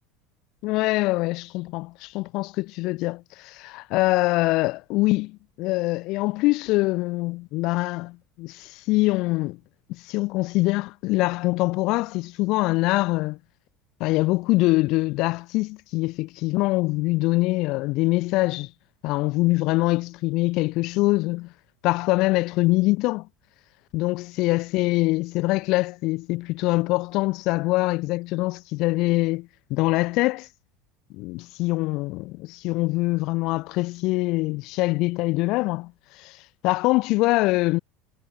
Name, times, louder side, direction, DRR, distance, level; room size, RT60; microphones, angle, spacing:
voice 1, 0.6-9.6 9.9-13.4 14.0-18.7 19.0-21.5 21.8-23.3 23.9-30.5 31.1-35.9 36.2-36.4 36.6-37.8, left 21 dB, 65° left, 2.6 m, -24 dB
supercardioid pair, 90°, 0 cm